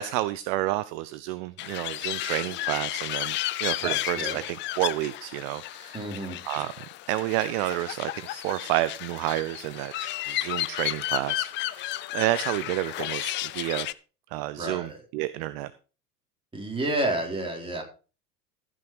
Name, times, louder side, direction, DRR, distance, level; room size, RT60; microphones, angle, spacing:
voice 1, 0.0-6.0 6.5-6.7 7.1-11.9 12.1-13.9 14.3-15.7, right 16 dB, 45° right, 0.7 m, -30 dB
sound 1, 1.6-13.9, left 15 dB, 25° left, 0.4 m, -33 dB
voice 2, 3.8-4.4 5.9-6.4 14.6-15.0 16.5-17.8, right 1 dB, 10° right, 4.1 m, -30 dB
15.0 x 6.2 x 4.9 m
figure-of-eight pair, 80°, 48 cm